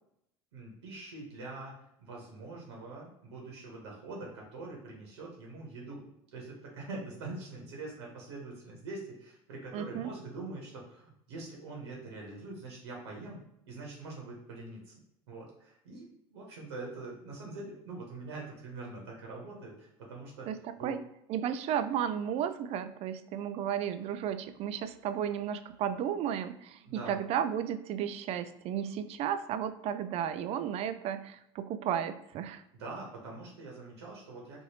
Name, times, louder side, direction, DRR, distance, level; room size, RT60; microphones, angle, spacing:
voice 1, 0.5-6.0 6.3-13.4 13.6-15.0 15.3-20.5 20.8-21.0 26.8-27.2 32.7-34.6, right 3 dB, 85° right, -2 dB, 1.0 m, -44 dB
voice 2, 9.7-10.1 20.5-21.0 21.3-32.6, right 9 dB, 50° right, 11 dB, 0.4 m, -33 dB
3.1 x 2.6 x 2.8 m, 0.76 s
hypercardioid pair, 90°, 13 cm